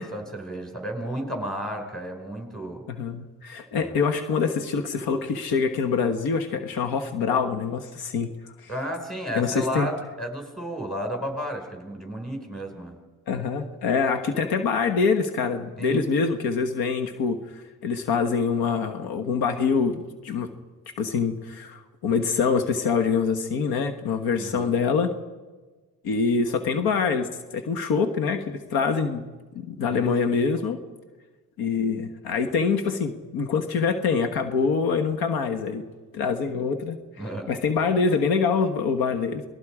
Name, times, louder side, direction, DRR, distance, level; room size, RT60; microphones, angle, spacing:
voice 1, 0.0-2.9 3.7-3.9 8.7-12.9 15.8-16.0 24.4-24.7 29.9-30.1 37.2-37.5, equal, ahead, 3 dB, 5.5 m, -33 dB
voice 2, 2.9-8.3 8.6-8.7 9.3-9.9 13.3-17.4 17.8-20.5 21.0-25.1 26.0-29.3 29.5-30.8 31.6-35.8 36.1-37.0 37.5-39.4, left 5 dB, 80° left, 7 dB, 1.6 m, -25 dB
27.0 x 20.0 x 5.0 m, 1.3 s
cardioid pair, 90°, 36 cm